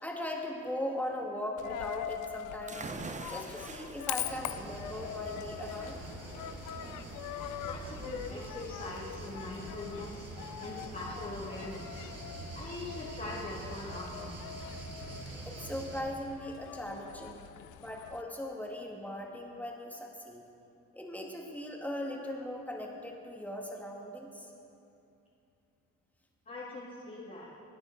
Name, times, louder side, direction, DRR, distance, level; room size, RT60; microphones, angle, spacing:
voice 1, 0.0-2.9 3.2-6.0 7.1-7.2 15.5-17.4 17.8-20.4 20.9-24.5, left 1 dB, 5° left, -1 dB, 2.0 m, -39 dB
Coin (dropping), 1.6-18.2, left 11 dB, 85° left, 0.5 m, -43 dB
sound 1, 2.7-10.2, right 3 dB, 25° right, 0.8 m, -47 dB
sound 2, 4.2-16.0, right 2 dB, 55° right, 2.7 m, -45 dB
voice 2, 7.6-12.1 12.5-14.4 26.5-27.5, left 2 dB, 30° left, -6 dB, 1.9 m, -42 dB
17.0 x 9.5 x 4.6 m, 2.7 s
cardioid pair, 90°, 30 cm